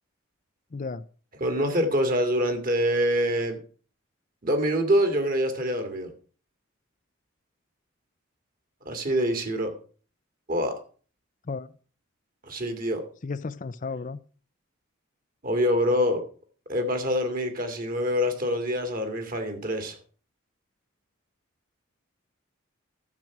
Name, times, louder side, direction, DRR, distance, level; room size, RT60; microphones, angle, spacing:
voice 1, 0.7-1.0 11.5-11.7 13.2-14.2, left 4 dB, 40° left, 0.5 m, -33 dB
voice 2, 1.4-3.6 4.4-6.1 8.9-9.7 10.5-10.8 12.4-13.0 15.4-16.2 16.7-20.0, equal, 40° right, 2.1 m, -25 dB
12.0 x 7.4 x 5.9 m
head